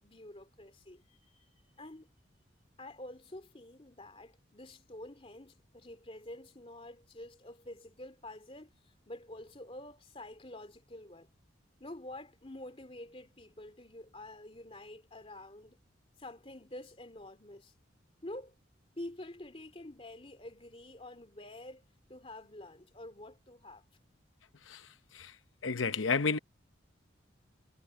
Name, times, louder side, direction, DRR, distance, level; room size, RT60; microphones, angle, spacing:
voice 1, 0.0-2.1 2.8-11.3 11.8-15.8 16.2-17.7 18.2-18.5 19.0-21.8 22.1-23.8, left 1 dB, 30° left, 2.6 m, -48 dB
voice 2, 25.6-26.4, left 5 dB, 90° left, 0.9 m, -31 dB
head